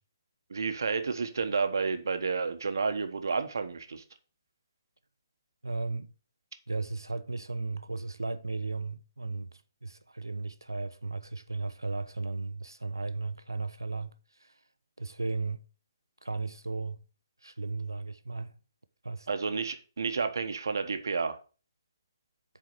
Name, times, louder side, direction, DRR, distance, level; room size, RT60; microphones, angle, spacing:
voice 1, 0.5-4.0 19.3-21.4, right 5 dB, 65° right, 1.1 m, -30 dB
voice 2, 5.6-6.1 6.7-14.1 14.4-14.5 15.0-15.6 16.2-17.0 17.4-18.5 19.0-19.3, right 3 dB, 90° right, 0.7 m, -35 dB
7.8 x 4.8 x 5.6 m
figure-of-eight pair, 135°, 2 cm